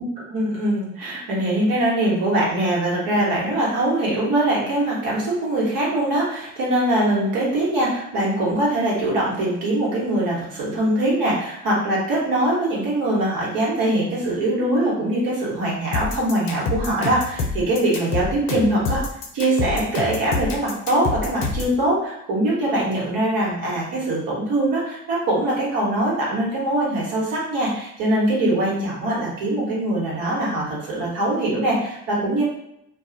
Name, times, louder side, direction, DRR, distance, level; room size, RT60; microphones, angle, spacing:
voice 1, 0.3-19.0 19.3-32.4, right 1 dB, 70° right, -5 dB, 1.2 m, -22 dB
sound 1, 15.9-21.7, left 4 dB, 75° left, 0.6 m, -27 dB
2.3 x 2.2 x 3.7 m, 0.79 s
hypercardioid pair, 40°, 36 cm